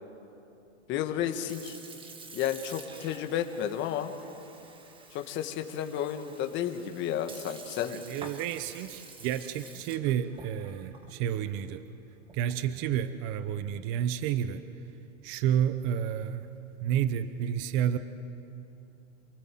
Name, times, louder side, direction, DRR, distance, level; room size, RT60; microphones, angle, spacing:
voice 1, 0.9-1.8 2.3-4.1 5.1-8.0, left 10 dB, 30° left, 6 dB, 1.5 m, -32 dB
Sink (filling or washing) / Fill (with liquid), 1.1-12.7, right 4 dB, 15° right, 1.4 m, -49 dB
voice 2, 7.9-11.8 12.3-14.6 15.2-16.5 16.8-18.0, right 10 dB, 30° right, 12 dB, 0.8 m, -30 dB
28.0 x 19.0 x 7.7 m, 2.8 s
hypercardioid pair, 140°, 38 cm